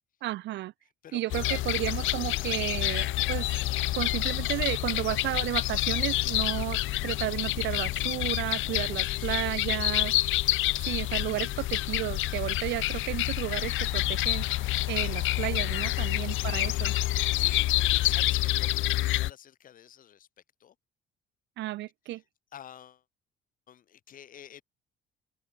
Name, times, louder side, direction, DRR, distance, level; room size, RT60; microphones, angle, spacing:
voice 1, 0.2-0.7 1.1-3.5 3.9-10.1 10.8-16.9 21.6-22.2, right 16 dB, 65° right, 0.5 m, -33 dB
voice 2, 1.0-1.6 4.9-5.1 8.7-9.4 15.7-15.9 17.2-20.3 20.6-20.8 22.1-22.2 22.5-23.0 23.7-24.6, left 10 dB, 45° left, 2.5 m, -49 dB
sound 1, 1.3-19.3, left 17 dB, 80° left, 1.0 m, -28 dB
open air
cardioid pair, 170°, 20 cm